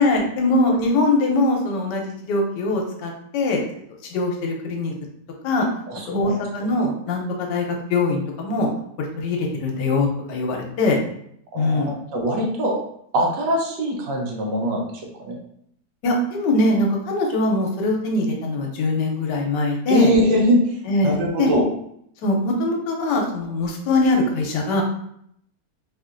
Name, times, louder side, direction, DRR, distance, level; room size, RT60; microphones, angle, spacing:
voice 1, 0.0-3.6 4.1-4.9 5.4-5.7 6.1-8.7 9.0-11.0 11.5-11.9 16.0-20.1 20.9-21.5 22.2-24.8, left 2 dB, 80° left, 1 dB, 1.3 m, -22 dB
voice 2, 5.9-6.3 11.5-12.8 13.1-14.8 15.2-15.4 19.9-20.6 21.0-21.6, equal, 90° right, 0 dB, 1.5 m, -21 dB
4.2 x 2.4 x 2.5 m, 0.70 s
omnidirectional pair, 1.9 m